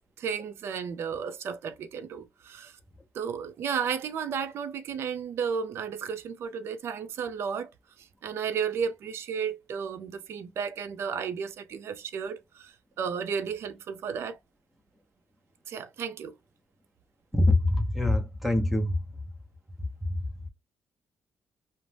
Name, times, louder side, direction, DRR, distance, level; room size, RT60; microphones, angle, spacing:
voice 1, 0.2-2.7 3.1-7.7 8.2-14.4 15.7-16.4, right 7 dB, 65° right, 0.4 m, -33 dB
voice 2, 17.3-19.0 20.0-20.2, left 2 dB, ahead, 0.7 m, -24 dB
2.5 x 2.1 x 3.1 m
cardioid pair, 120°, 5 cm